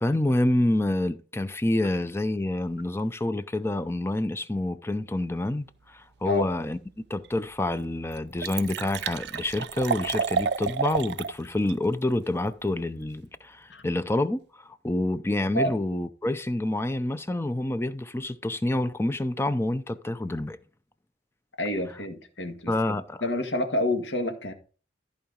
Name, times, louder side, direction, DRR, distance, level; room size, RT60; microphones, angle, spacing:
voice 1, 0.0-20.6 22.7-23.2, left 1 dB, 15° left, 0.5 m, -28 dB
Liquid, 7.2-7.3 7.8-11.3 11.7-11.8, right 6 dB, 60° right, 0.4 m, -30 dB
voice 2, 21.6-22.7 23.2-24.5, left 1 dB, 70° left, 1.8 m, -28 dB
14.0 x 4.7 x 5.2 m
head